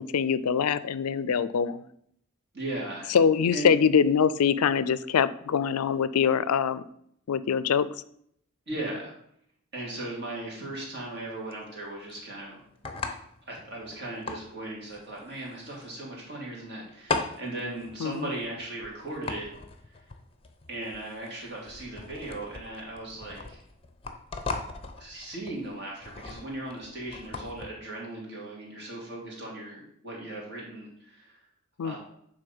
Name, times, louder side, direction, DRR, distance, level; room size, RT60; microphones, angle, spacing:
voice 1, 0.0-1.8 3.1-6.8 7.3-7.9 18.0-18.3 31.8-32.0, left 7 dB, 90° left, 16 dB, 0.4 m, -24 dB
voice 2, 2.5-3.1 3.5-3.8 8.7-9.1 9.7-12.6 13.5-19.5 19.9-20.0 20.7-23.6 25.0-31.4 31.8-32.0, right 2 dB, 50° right, -3 dB, 2.8 m, -37 dB
sound 1, 10.0-27.7, left 3 dB, 25° left, 0.6 m, -39 dB
9.2 x 3.7 x 5.3 m, 0.70 s
head